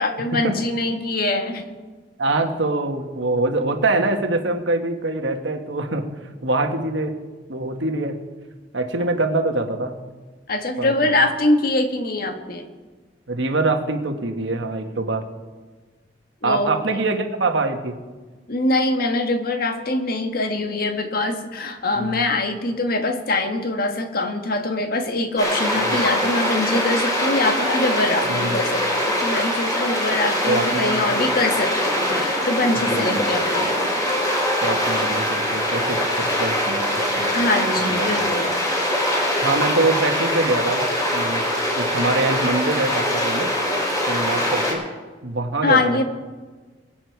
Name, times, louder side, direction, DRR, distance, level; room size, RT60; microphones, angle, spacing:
voice 1, 0.0-1.7 10.5-12.6 16.4-16.7 18.5-33.8 37.3-38.5 45.6-46.0, left 2 dB, 55° left, 6 dB, 1.5 m, -23 dB
voice 2, 2.2-7.2 7.5-8.2 8.7-10.0 10.8-11.2 13.3-15.2 16.4-18.0 21.9-22.3 25.9-26.0 28.3-28.6 30.5-31.0 32.9-33.3 34.6-37.3 37.8-38.2 39.4-41.5 41.8-43.5 44.1-44.8 45.2-46.0, right 2 dB, 75° right, 5 dB, 1.6 m, -24 dB
sound 1, 25.4-44.7, equal, 20° left, 3.2 m, -22 dB
22.0 x 9.1 x 4.7 m, 1.4 s
head